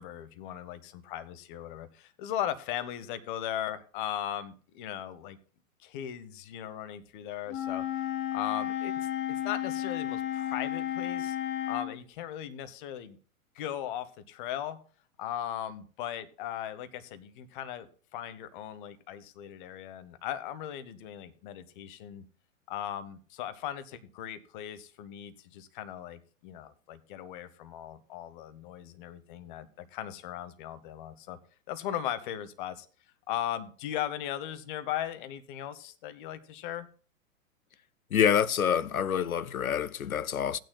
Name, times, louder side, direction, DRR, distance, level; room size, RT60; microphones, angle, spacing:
voice 1, 0.0-5.4 5.8-8.0 8.3-8.9 9.3-11.4 11.7-13.2 13.5-14.8 15.2-22.2 22.7-31.4 31.7-32.9 33.3-36.9, left 11 dB, 35° left, 0.9 m, -38 dB
Wind instrument woodwind instrument, 7.5-11.9, left 11 dB, 15° left, 0.6 m, -33 dB
voice 2, 38.1-40.6, left 8 dB, 85° left, 0.6 m, -27 dB
16.0 x 9.2 x 2.2 m
figure-of-eight pair, 115°, 41 cm